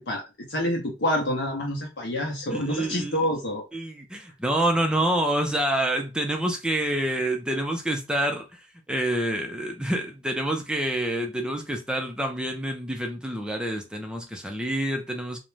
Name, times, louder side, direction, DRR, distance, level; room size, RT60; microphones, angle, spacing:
voice 1, 0.0-3.6, left 1 dB, 65° left, 0.7 m, -27 dB
voice 2, 2.5-3.2 3.7-8.6 8.9-15.4, right 1 dB, 5° right, 0.4 m, -27 dB
2.5 x 2.1 x 3.1 m
head